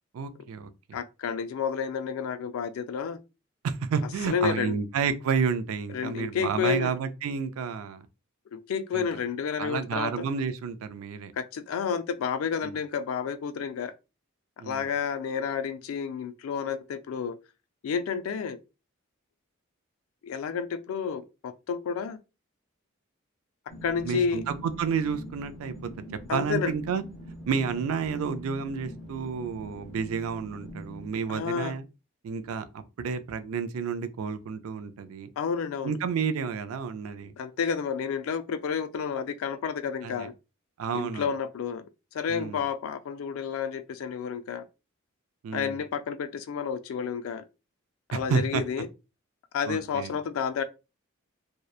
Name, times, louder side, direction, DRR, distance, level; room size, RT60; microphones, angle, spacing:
voice 1, 0.1-1.0 3.6-8.1 8.9-9.1 9.6-11.3 12.6-12.7 14.6-14.9 24.0-25.9 26.3-31.8 32.2-35.3 35.8-37.3 40.0-40.3 40.8-41.3 42.3-42.6 45.4-45.8 48.1-48.6 49.7-50.1, right 6 dB, 85° right, 0.3 m, -30 dB
voice 2, 0.9-3.2 4.3-4.8 5.9-6.9 8.5-10.3 11.4-13.9 14.6-17.4 17.8-18.6 20.2-22.2 23.8-24.4 26.3-26.7 31.3-31.8 35.4-36.0 37.4-40.3 40.9-41.9 42.1-44.6 45.5-47.4 48.1-48.9 49.5-50.6, left 6 dB, 80° left, 0.3 m, -30 dB
sound 1, 23.7-31.1, equal, ahead, 0.6 m, -43 dB
2.7 x 2.1 x 2.3 m
head